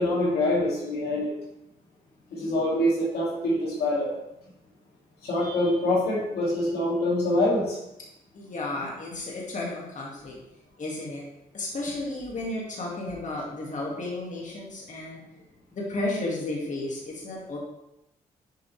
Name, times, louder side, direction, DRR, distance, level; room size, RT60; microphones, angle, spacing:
voice 1, 0.0-1.3 2.3-4.1 5.2-7.8, left 1 dB, 80° left, -5 dB, 2.3 m, -25 dB
voice 2, 8.3-10.3 10.8-11.2 11.5-15.2 15.7-17.6, left 2 dB, 50° left, -3 dB, 2.0 m, -33 dB
7.4 x 5.0 x 3.2 m, 0.88 s
supercardioid pair, 55°, 16 cm